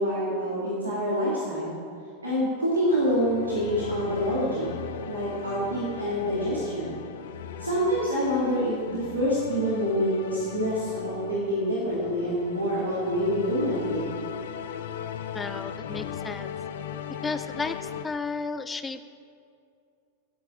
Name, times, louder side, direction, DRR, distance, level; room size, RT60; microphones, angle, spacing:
voice 1, 0.0-1.7 2.2-4.7 5.1-6.9 7.6-14.1, equal, 75° right, -7 dB, 2.3 m, -26 dB
sound 1, 2.6-18.0, left 8 dB, 55° left, 0.6 m, -38 dB
voice 2, 15.3-16.5 17.2-19.0, left 4 dB, 15° left, 11 dB, 0.3 m, -33 dB
17.5 x 8.1 x 3.7 m, 2.4 s
figure-of-eight pair, 90°, 0 cm